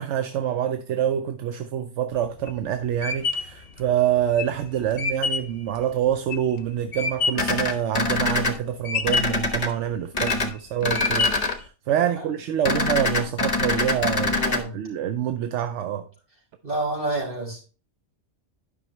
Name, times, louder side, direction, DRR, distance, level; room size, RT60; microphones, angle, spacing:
voice 1, 0.0-14.4 14.7-16.1, right 10 dB, 80° right, 0.9 m, -26 dB
sound 1, 2.1-7.6 8.0-8.6 8.8-9.5 10.0-10.5 10.9-11.6, left 4 dB, 60° left, 0.9 m, -27 dB
sound 2, 7.3-8.5 9.0-9.7 10.1-10.5 10.8-11.5 12.6-14.6, left 3 dB, 35° left, 1.1 m, -24 dB
voice 2, 12.0-12.3 14.2-14.8 16.6-17.6, right 2 dB, 50° right, 4.0 m, -29 dB
10.5 x 5.8 x 3.1 m
omnidirectional pair, 1.2 m